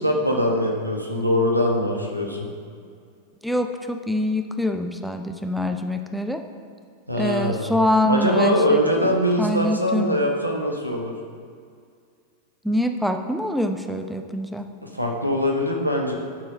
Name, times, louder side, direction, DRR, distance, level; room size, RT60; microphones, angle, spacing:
voice 1, 0.0-2.5 7.1-7.8 8.1-11.1 14.8-16.2, equal, 90° right, 1 dB, 1.1 m, -22 dB
voice 2, 3.4-6.4 7.1-8.8 9.0-10.1 12.6-14.7, left 1 dB, ahead, 6 dB, 0.5 m, -24 dB
10.5 x 4.5 x 5.6 m, 2.2 s
figure-of-eight pair, 90°, 0 cm